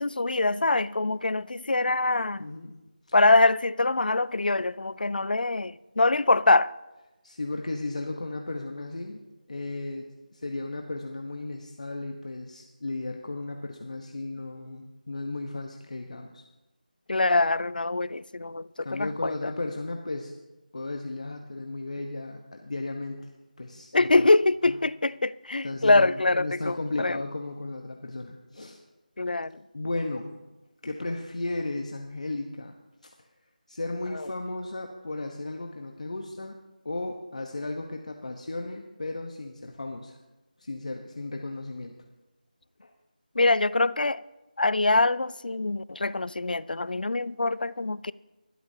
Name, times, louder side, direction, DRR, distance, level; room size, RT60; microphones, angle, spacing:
voice 1, 0.0-2.4 3.1-6.7 17.1-19.3 23.9-27.2 29.2-29.6 34.1-34.3 43.4-44.2 44.6-48.1, left 2 dB, 90° left, 0.4 m, -24 dB
voice 2, 2.4-2.8 3.1-3.2 7.2-9.2 9.5-16.4 18.8-20.3 20.7-23.3 23.6-24.3 24.6-24.8 25.6-28.8 29.7-30.4 30.8-32.7 33.0-33.3 33.7-36.6 36.8-40.2 40.6-41.9 42.8-42.9, left 2 dB, 50° left, 1.0 m, -35 dB
21.0 x 12.5 x 2.8 m
figure-of-eight pair, 175°, 5 cm